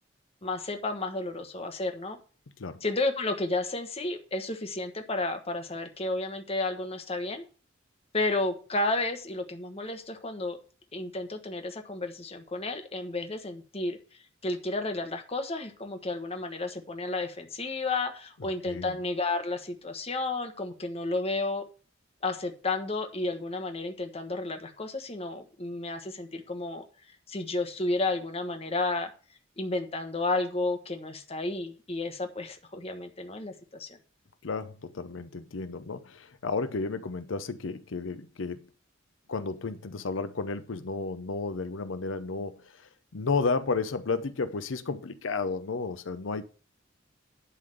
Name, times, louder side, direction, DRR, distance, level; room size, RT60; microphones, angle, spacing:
voice 1, 0.4-2.2 2.8-7.4 8.1-10.6 10.9-14.0 14.4-21.6 22.2-26.8 27.3-29.1 29.6-33.9, left 2 dB, 30° left, 1.3 m, -32 dB
voice 2, 18.4-19.0 34.4-38.7 39.3-46.4, left 4 dB, 90° left, 0.7 m, -32 dB
11.0 x 3.8 x 7.7 m
head